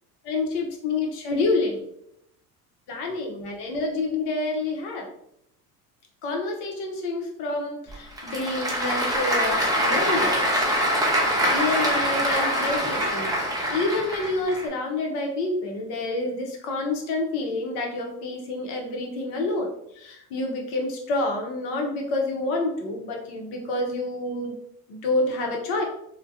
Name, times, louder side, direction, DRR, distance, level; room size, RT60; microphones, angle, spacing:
voice 1, 0.2-1.8 2.9-5.1 6.2-10.6 11.5-13.3 13.7-19.7 20.0-24.5 24.9-25.8, left 2 dB, 60° left, 2 dB, 0.8 m, -28 dB
Applause / Crowd, 7.9-14.6, equal, 10° right, 0.7 m, -24 dB
2.2 x 2.2 x 2.7 m, 0.76 s
hypercardioid pair, 70°, 45 cm